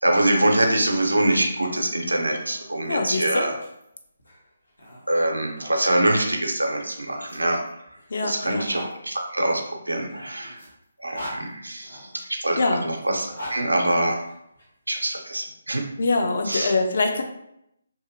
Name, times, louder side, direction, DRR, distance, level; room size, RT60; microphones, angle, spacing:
voice 1, 0.0-3.5 5.1-7.6 8.2-10.6 11.0-12.6 12.8-14.2 14.9-15.8 16.5-16.7, right 1 dB, 85° right, 2 dB, 0.6 m, -24 dB
sound 1, 1.2-5.8 6.7-8.9 9.9-12.2 13.0-14.7, equal, 80° left, 1.0 m, -42 dB
voice 2, 2.9-3.5 8.1-8.7 12.6-12.9 16.0-17.2, left 3 dB, 55° left, 3 dB, 0.5 m, -24 dB
2.7 x 2.7 x 2.6 m, 0.78 s
figure-of-eight pair, 145°, 0 cm